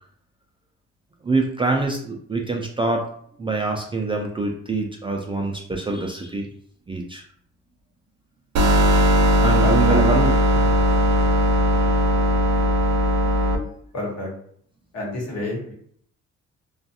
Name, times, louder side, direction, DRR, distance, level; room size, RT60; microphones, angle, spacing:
voice 1, 1.2-3.1 3.4-6.5 6.9-7.2 9.4-10.8, right 3 dB, 20° right, 1 dB, 0.3 m, -25 dB
sound 1, 8.6-13.6, equal, 60° right, 0.6 m, -18 dB
voice 2, 9.6-10.0 13.9-14.3 14.9-15.7, left 1 dB, 55° left, -2 dB, 1.2 m, -28 dB
2.4 x 2.3 x 2.7 m, 0.62 s
cardioid pair, 90°, 30 cm